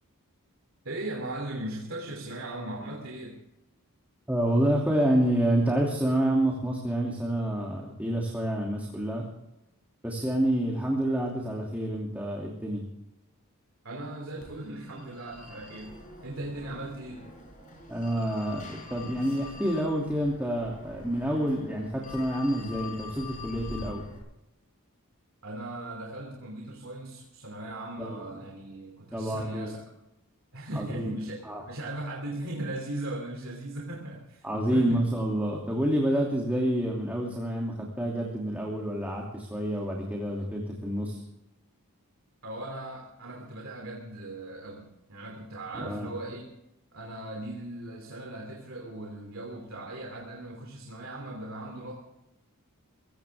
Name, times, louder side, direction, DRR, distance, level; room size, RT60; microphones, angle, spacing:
voice 1, 0.8-3.4 13.8-17.3 25.4-29.8 30.5-31.4 31.7-35.1 42.4-46.5 46.9-51.9, right 1 dB, 65° right, 1 dB, 3.0 m, -38 dB
voice 2, 4.3-9.2 10.0-12.8 17.9-24.1 28.0-28.2 29.1-29.7 30.7-31.1 31.4-31.6 34.4-41.2 45.8-46.1, right 1 dB, 5° right, -2 dB, 2.7 m, -28 dB
Telephone, 14.4-24.2, left 3 dB, 35° left, 5.8 m, -45 dB
22.0 x 16.5 x 3.6 m, 0.90 s
head